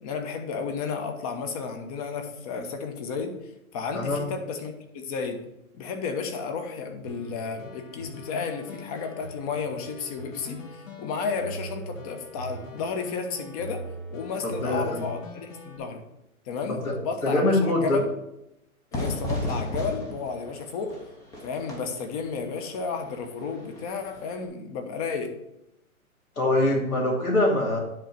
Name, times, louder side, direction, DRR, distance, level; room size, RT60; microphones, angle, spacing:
voice 1, 0.0-3.4 3.7-5.4 5.8-13.8 14.1-16.0 16.5-18.1 18.9-21.0 21.4-25.4, left 5 dB, 25° left, 6 dB, 1.0 m, -32 dB
sound 1, 7.0-15.8, equal, 60° left, 2.1 m, -41 dB
voice 2, 14.4-15.0 16.7-16.9 17.2-18.0 26.4-27.8, left 1 dB, 90° left, -3 dB, 2.7 m, -24 dB
Fire / Fireworks, 18.9-24.4, left 1 dB, 10° left, 0.7 m, -35 dB
10.0 x 4.0 x 6.1 m, 0.85 s
hypercardioid pair, 145°, 43 cm